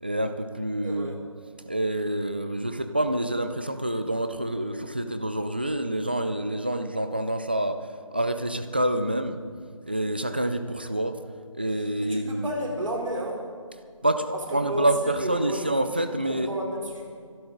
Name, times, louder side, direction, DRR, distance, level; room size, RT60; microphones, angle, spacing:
voice 1, 0.0-1.2 1.7-9.4 9.9-11.2 11.5-12.5 14.0-16.5, right 1 dB, 20° right, 9 dB, 0.4 m, -27 dB
voice 2, 0.8-1.2 12.0-13.4 14.6-15.6 16.3-17.0, equal, 70° right, 0 dB, 3.4 m, -32 dB
25.5 x 12.0 x 3.8 m, 2.1 s
figure-of-eight pair, 170°, 17 cm